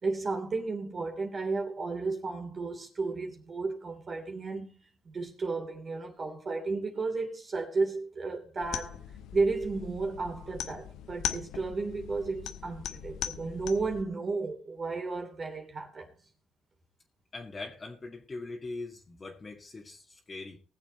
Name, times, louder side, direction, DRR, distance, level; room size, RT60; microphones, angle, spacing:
voice 1, 0.0-9.0 9.3-16.1, right 3 dB, 40° right, 3.0 m, -33 dB
sound 1, 8.6-14.0, left 10 dB, 85° left, 1.0 m, -39 dB
voice 2, 17.3-20.6, left 3 dB, 30° left, 2.1 m, -41 dB
19.5 x 7.2 x 4.4 m
cardioid pair, 90°, 0 cm